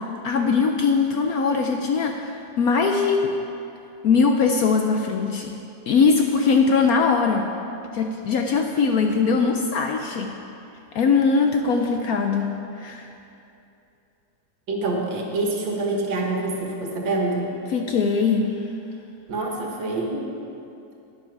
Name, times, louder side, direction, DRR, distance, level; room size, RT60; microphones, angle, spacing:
voice 1, 0.2-3.3 4.0-5.5 5.9-7.5 7.9-10.3 10.9-13.1 17.7-18.6, left 5 dB, 70° left, 3 dB, 0.9 m, -21 dB
voice 2, 14.7-17.6 19.3-20.3, right 2 dB, 80° right, 0 dB, 2.1 m, -26 dB
11.5 x 9.6 x 4.7 m, 2.7 s
omnidirectional pair, 2.0 m